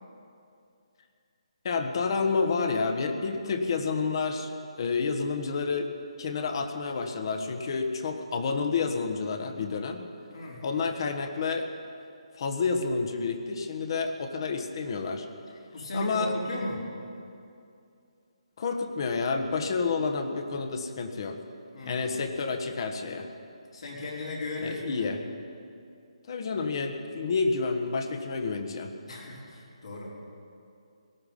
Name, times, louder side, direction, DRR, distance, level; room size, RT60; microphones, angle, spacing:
voice 1, 1.6-5.9 6.2-10.1 10.6-11.7 12.4-15.3 15.9-16.3 18.6-21.4 21.8-23.3 24.6-25.2 26.3-28.9, left 4 dB, 45° left, 6 dB, 1.4 m, -29 dB
voice 2, 10.3-10.6 15.7-16.8 21.7-22.1 23.7-25.1 29.1-30.1, left 1 dB, 70° left, -4 dB, 4.3 m, -36 dB
18.5 x 12.5 x 5.5 m, 2.5 s
hypercardioid pair, 155°, 3 cm